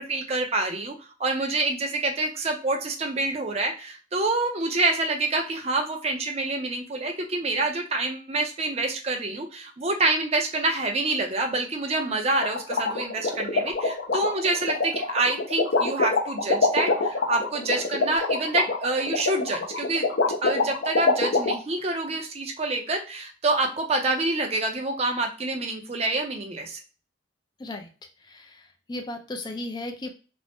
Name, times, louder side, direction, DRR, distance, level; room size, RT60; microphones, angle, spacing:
voice 1, 0.0-20.1 20.4-26.8, right 2 dB, 35° right, 3 dB, 0.6 m, -27 dB
sound 1, 12.4-21.5, left 3 dB, 70° left, 0.7 m, -24 dB
voice 2, 28.2-30.1, left 2 dB, 25° left, 5 dB, 0.4 m, -35 dB
2.6 x 2.1 x 3.4 m, 0.35 s
head